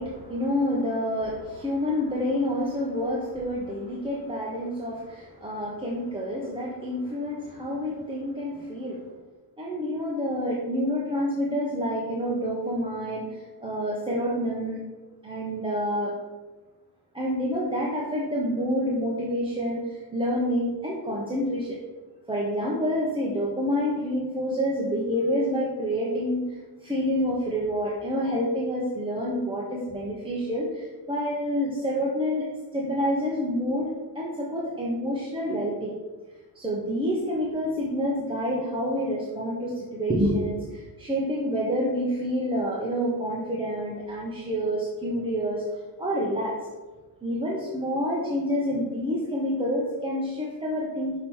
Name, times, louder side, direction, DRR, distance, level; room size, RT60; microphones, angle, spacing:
voice 1, 0.0-9.0 9.6-14.8 15.2-16.1 17.1-21.8 22.3-32.4 32.7-35.9 36.5-45.6 46.0-46.5 47.2-51.2, equal, 10° right, -5 dB, 0.8 m, -28 dB
5.9 x 3.0 x 5.4 m, 1.2 s
cardioid pair, 135°, 45 cm